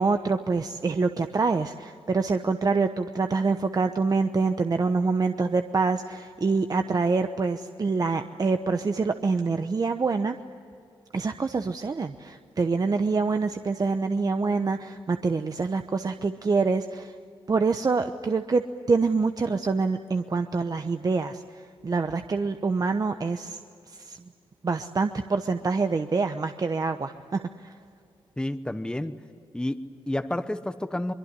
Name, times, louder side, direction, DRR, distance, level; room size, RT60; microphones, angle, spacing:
voice 1, 0.0-10.4 11.1-17.1 17.5-21.4 21.8-23.6 23.9-24.2 24.6-27.7, right 4 dB, 40° right, 8 dB, 1.0 m, -26 dB
voice 2, 28.4-29.2 29.5-31.1, left 1 dB, 10° left, 9 dB, 1.1 m, -30 dB
23.5 x 22.5 x 9.8 m, 2.4 s
cardioid pair, 65°, 10 cm